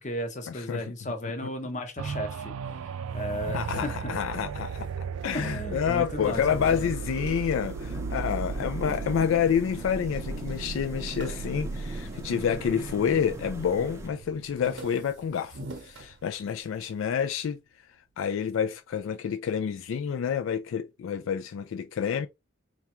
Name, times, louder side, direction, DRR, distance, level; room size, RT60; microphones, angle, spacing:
voice 1, 0.0-4.2 5.3-7.0, left 1 dB, 35° left, 0.7 m, -35 dB
sound 1, 2.0-15.6 16.1-16.2, right 5 dB, 85° right, 0.4 m, -36 dB
sound 2, 3.1-5.7 6.0-8.6 9.2-9.8 10.1-10.2 10.5-13.1 13.5-13.9 14.2-16.8, right 2 dB, 55° right, 0.7 m, -47 dB
voice 2, 3.5-4.9 5.2-17.6 18.2-22.3, left 7 dB, 70° left, 0.3 m, -28 dB
sound 3, 6.2-14.1, right 1 dB, 15° right, 0.6 m, -41 dB
3.5 x 2.3 x 4.2 m
head